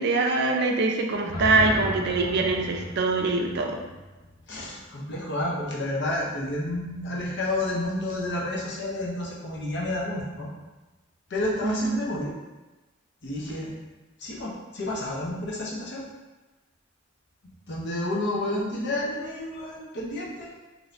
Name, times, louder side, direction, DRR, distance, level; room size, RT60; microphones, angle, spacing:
voice 1, 0.0-3.8 11.6-12.0, right 3 dB, 55° right, 2 dB, 0.4 m, -24 dB
sound 1, 1.1-5.2, left 1 dB, 25° left, 0.8 m, -36 dB
voice 2, 4.5-10.5 11.3-12.3 13.2-13.7 14.2-16.0 17.7-20.5, left 1 dB, 60° left, -3 dB, 0.7 m, -30 dB
2.7 x 2.5 x 3.2 m, 1.1 s
head